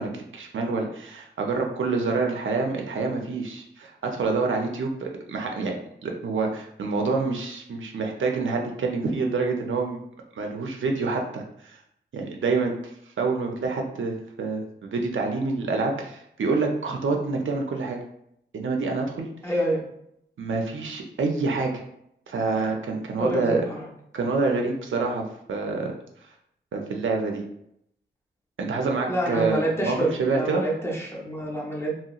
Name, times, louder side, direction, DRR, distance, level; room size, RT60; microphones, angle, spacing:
voice 1, 0.0-5.7 6.0-10.0 10.4-11.8 12.1-12.8 13.2-18.0 18.5-19.3 20.4-21.8 22.3-23.6 24.1-25.9 26.7-27.4 28.6-30.6, right 4 dB, 90° right, 2 dB, 0.5 m, -27 dB
voice 2, 19.4-19.8 23.2-23.9 29.1-31.9, right 1 dB, 15° left, -3 dB, 0.8 m, -27 dB
3.0 x 2.8 x 2.3 m, 0.73 s
wide cardioid pair, 100°, 20 cm